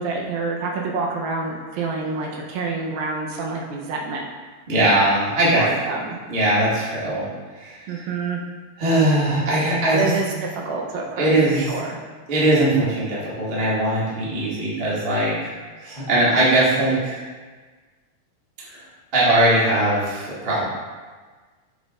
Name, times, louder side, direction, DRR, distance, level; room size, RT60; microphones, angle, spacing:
voice 1, 0.0-4.2 5.5-6.2 7.9-8.4 9.9-10.3 10.5-12.0, right 4 dB, 80° right, -1 dB, 2.5 m, -27 dB
voice 2, 4.7-5.6 6.3-7.2 7.5-8.0 8.8-10.1 11.2-11.7 12.3-17.2 18.7-18.8 19.1-20.6, right 1 dB, 35° right, -8 dB, 0.8 m, -20 dB
7.6 x 7.1 x 2.5 m, 1.4 s
omnidirectional pair, 4.4 m